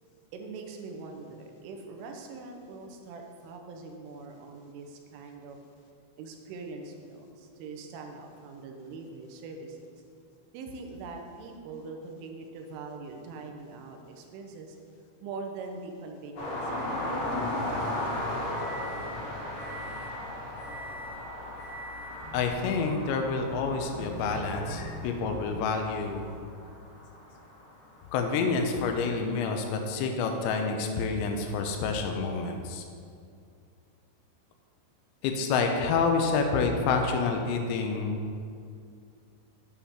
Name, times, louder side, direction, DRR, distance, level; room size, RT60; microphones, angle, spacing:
voice 1, 0.3-5.6 6.2-9.9 10.5-14.8 15.2-17.7, right 3 dB, 80° right, 3 dB, 3.3 m, -42 dB
sound 1, 16.4-27.8 29.3-29.4, left 1 dB, 45° left, 2.3 m, -36 dB
sound 2, 17.0-26.4, left 1 dB, 70° left, 2.7 m, -47 dB
sound 3, 22.2-27.1, right 2 dB, 40° right, 2.6 m, -43 dB
voice 2, 22.3-26.2 28.1-32.8 35.2-38.2, left 4 dB, 90° left, 4 dB, 2.5 m, -28 dB
8.6 x 5.7 x 6.3 m, 2.4 s
omnidirectional pair, 5.9 m